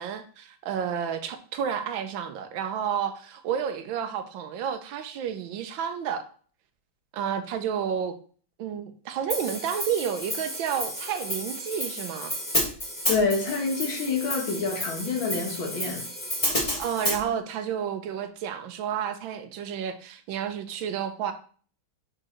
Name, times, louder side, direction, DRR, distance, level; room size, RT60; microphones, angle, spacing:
voice 1, 0.0-6.2 7.1-8.2 8.6-12.4 16.8-21.3, right 8 dB, 75° right, 1.4 m, -31 dB
Hi-hat, 9.3-17.2, left 1 dB, 20° left, 1.4 m, -31 dB
voice 2, 13.1-16.0, left 4 dB, 75° left, 2.2 m, -27 dB
4.9 x 4.8 x 4.3 m
omnidirectional pair, 2.2 m